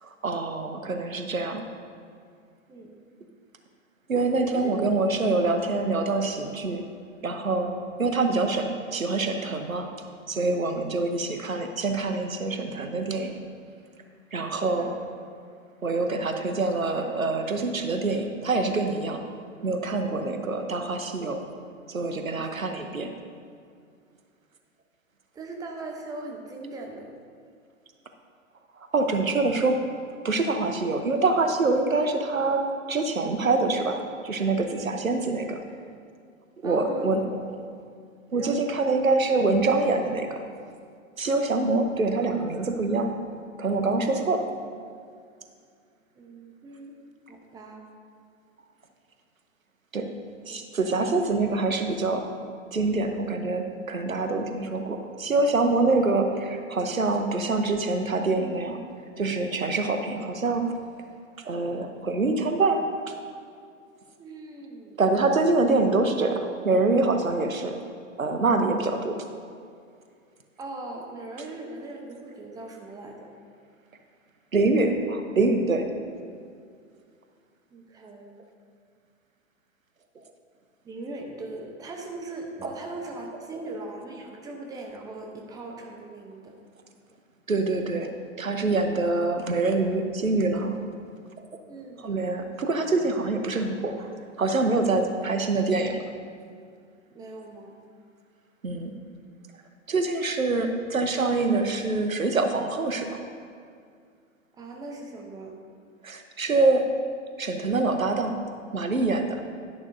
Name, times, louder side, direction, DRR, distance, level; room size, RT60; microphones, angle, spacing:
voice 1, 0.0-1.6 4.1-6.8 7.2-7.7 8.0-9.9 10.3-13.3 14.3-14.9 15.8-19.2 19.6-21.4 21.9-23.1 28.8-29.8 30.2-32.6 32.9-34.0 34.2-35.6 36.6-37.2 38.3-40.4 41.2-43.1 43.6-44.4 49.9-50.1 50.5-52.2 52.7-58.8 59.2-60.7 61.4-62.8 65.0-67.7 68.2-69.2 74.5-75.9 87.5-88.1 88.4-90.8 92.0-94.1 94.4-96.0 98.6-98.9 99.9-103.1 106.0-106.8 107.4-108.4 108.7-109.4, right 3 dB, 85° right, 6 dB, 1.0 m, -25 dB
voice 2, 4.2-4.7 14.5-14.9 21.2-21.3 22.3-22.5 25.3-27.1 36.6-37.2 38.3-38.6 46.1-46.9 47.3-47.8 50.9-51.3 64.2-64.9 70.6-73.2 77.7-78.3 80.8-86.5 91.7-92.0 97.1-97.7 104.6-105.5, right 2 dB, 10° right, 1 dB, 0.8 m, -39 dB
11.0 x 10.5 x 2.7 m, 2.3 s
figure-of-eight pair, 110°, 40 cm